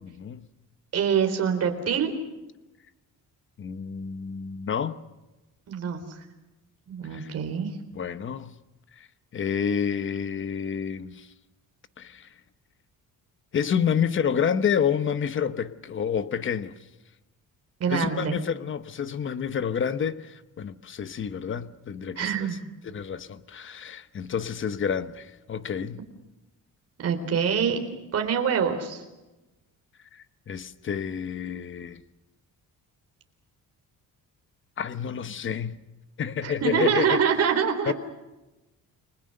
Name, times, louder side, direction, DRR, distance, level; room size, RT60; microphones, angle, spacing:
voice 1, 0.0-0.5 3.6-5.0 7.1-7.3 7.9-8.5 9.0-9.1 9.3-11.3 12.0-12.3 13.5-16.7 17.9-22.4 22.8-26.0 30.1-32.0 34.8-35.8 36.2-37.2 37.8-37.9, left 7 dB, 35° left, 1.0 m, -29 dB
voice 2, 0.9-2.1 5.7-6.2 6.9-7.7 17.8-18.4 22.2-22.6 27.0-27.8 28.1-29.0 36.4-37.9, right 7 dB, 45° right, 3.9 m, -25 dB
29.5 x 21.5 x 6.7 m
cardioid pair, 170°, 35 cm